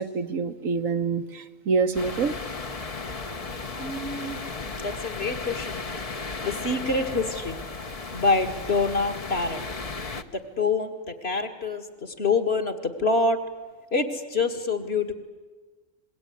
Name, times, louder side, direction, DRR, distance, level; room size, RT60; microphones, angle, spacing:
voice 1, 0.0-2.3, right 5 dB, 85° right, 8 dB, 1.6 m, -26 dB
sound 1, 1.9-10.2, left 3 dB, 30° left, 1.0 m, -35 dB
voice 2, 3.8-4.4 4.8-5.8 6.4-7.6 8.1-9.6 10.3-13.4 13.9-15.1, left 3 dB, 50° left, 4 dB, 2.2 m, -26 dB
25.5 x 21.5 x 9.5 m, 1.3 s
omnidirectional pair, 1.4 m